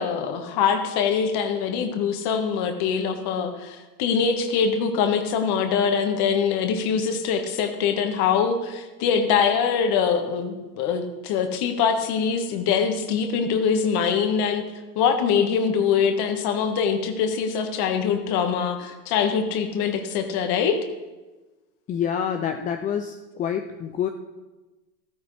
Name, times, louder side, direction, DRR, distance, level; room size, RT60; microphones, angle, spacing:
voice 1, 0.0-14.6 15.0-20.8, left 6 dB, 55° left, 6 dB, 1.7 m, -23 dB
voice 2, 21.9-24.1, left 8 dB, 20° left, 6 dB, 0.3 m, -27 dB
14.0 x 12.5 x 3.3 m, 1.2 s
supercardioid pair, 105°, 46 cm